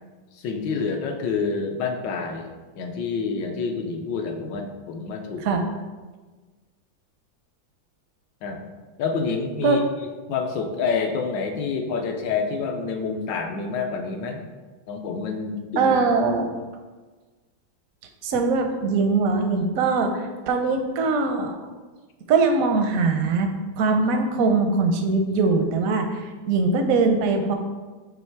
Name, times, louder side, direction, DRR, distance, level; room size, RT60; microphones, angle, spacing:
voice 1, 0.3-2.5 2.8-5.5 8.4-8.6 9.0-9.8 10.3-14.4 14.9-15.9, left 5 dB, 70° left, 4 dB, 1.2 m, -28 dB
voice 2, 15.8-16.5 18.2-21.6 22.3-23.5 23.8-27.5, right 4 dB, 70° right, 5 dB, 0.8 m, -21 dB
7.7 x 3.0 x 4.5 m, 1.3 s
omnidirectional pair, 2.2 m